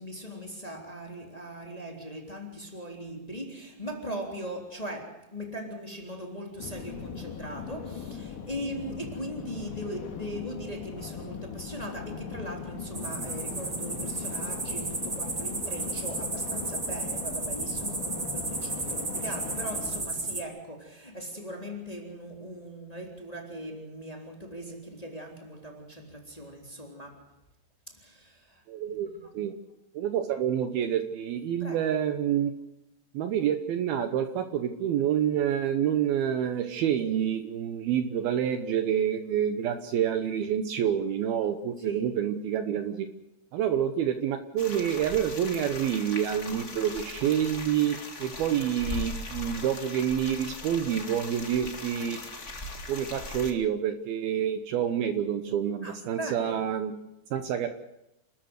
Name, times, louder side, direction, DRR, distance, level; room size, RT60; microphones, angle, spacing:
voice 1, 0.0-27.3 27.9-29.3 31.6-31.9 41.8-42.1 55.8-56.6, right 1 dB, 10° left, 3.0 m, -40 dB
sound 1, 6.6-20.0, left 7 dB, 55° left, 3.1 m, -39 dB
sound 2, 12.9-20.4, right 3 dB, 30° right, 1.1 m, -33 dB
voice 2, 28.7-29.5 29.9-32.5 33.1-43.1 43.5-52.2 52.9-56.9 57.3-57.7, right 9 dB, 70° right, 2.7 m, -28 dB
sound 3, 44.6-53.5, left 2 dB, 30° left, 1.4 m, -39 dB
29.0 x 13.5 x 8.1 m
omnidirectional pair, 4.9 m